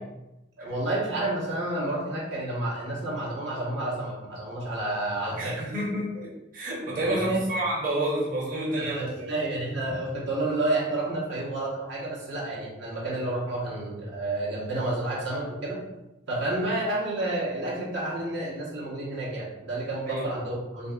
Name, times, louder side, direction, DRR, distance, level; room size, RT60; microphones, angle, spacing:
voice 1, 0.6-5.6 7.0-7.4 8.8-15.8 16.3-20.9, right 2 dB, 75° right, -5 dB, 1.2 m, -30 dB
voice 2, 5.4-9.3 20.1-20.3, right 1 dB, 45° right, -6 dB, 1.2 m, -29 dB
6.3 x 2.6 x 2.5 m, 0.94 s
head